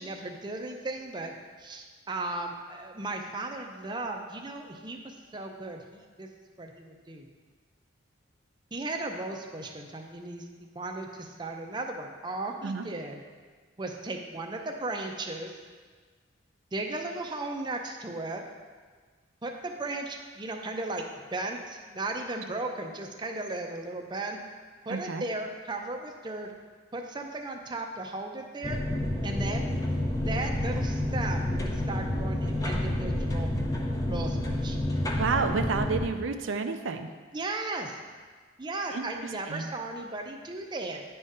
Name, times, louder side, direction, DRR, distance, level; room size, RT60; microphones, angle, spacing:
voice 1, 0.0-6.3 6.6-7.3 8.7-13.2 13.8-15.5 16.7-18.5 19.4-24.4 24.9-26.5 26.9-28.8 29.2-29.6 30.3-33.5 34.0-34.8 37.3-38.0 38.6-41.0, right 2 dB, 25° right, 3 dB, 0.5 m, -36 dB
voice 2, 24.9-25.3 35.2-37.1 38.9-39.0 39.5-39.7, right 4 dB, 75° right, 7 dB, 0.5 m, -30 dB
sound 1, 28.6-36.1, left 1 dB, 20° left, 0.6 m, -29 dB
9.4 x 3.6 x 5.4 m, 1.5 s
head